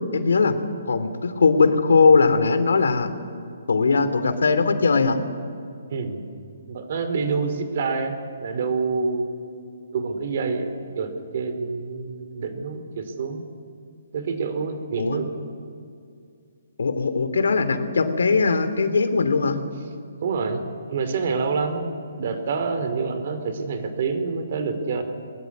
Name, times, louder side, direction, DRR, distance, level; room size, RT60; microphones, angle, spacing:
voice 1, 0.1-0.6 0.9-3.1 3.7-5.2 15.0-15.2 16.8-19.6, left 4 dB, 80° left, 10 dB, 2.8 m, -19 dB
voice 2, 5.9-6.3 6.7-9.3 9.9-13.4 14.1-15.3 20.2-25.0, right 4 dB, 40° right, 8 dB, 2.9 m, -27 dB
22.0 x 21.5 x 9.6 m, 2.4 s
hypercardioid pair, 175°, 0 cm